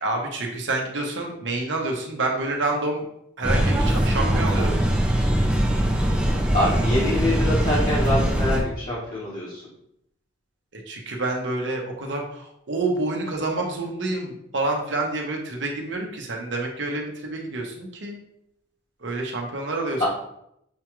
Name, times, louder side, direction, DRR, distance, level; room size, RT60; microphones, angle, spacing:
voice 1, 0.0-3.0 3.4-4.8 10.7-18.2 19.0-20.0, right 2 dB, 75° right, 1 dB, 0.9 m, -28 dB
sound 1, 3.4-8.6, right 1 dB, 5° right, 0.4 m, -21 dB
voice 2, 6.5-9.6 20.0-20.1, left 1 dB, 45° left, -8 dB, 1.1 m, -25 dB
6.8 x 2.3 x 3.0 m, 0.76 s
head